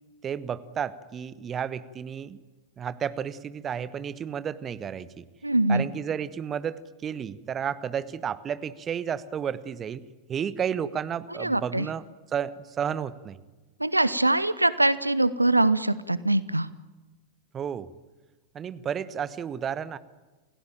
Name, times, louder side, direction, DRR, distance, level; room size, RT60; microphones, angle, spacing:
voice 1, 0.2-2.4 2.8-5.2 5.7-10.0 10.3-12.0 12.3-13.4 17.5-17.9 18.5-20.0, right 8 dB, 25° right, 15 dB, 1.2 m, -32 dB
voice 2, 5.4-5.9 11.4-11.9 13.8-16.7, right 2 dB, 85° right, 17 dB, 0.8 m, -23 dB
28.0 x 17.0 x 9.0 m, 1.2 s
figure-of-eight pair, 90°, 0 cm